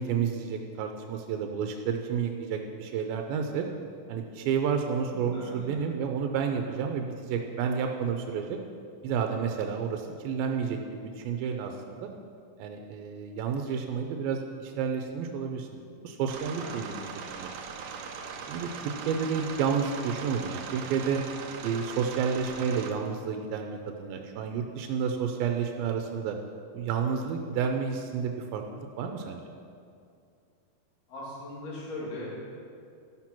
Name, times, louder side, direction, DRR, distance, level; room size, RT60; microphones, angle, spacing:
voice 1, 0.0-3.7 4.1-8.6 9.0-12.1 12.6-15.7 16.0-17.0 17.3-17.5 18.5-21.2 21.6-26.4 26.7-29.5, right 6 dB, 90° right, 4 dB, 2.5 m, -30 dB
voice 2, 5.1-5.7 16.6-16.9 31.1-32.4, left 1 dB, 65° left, -7 dB, 4.1 m, -40 dB
sound 1, 16.3-22.9, right 5 dB, 75° right, 1.9 m, -40 dB
13.0 x 6.0 x 5.8 m, 2.4 s
omnidirectional pair, 4.2 m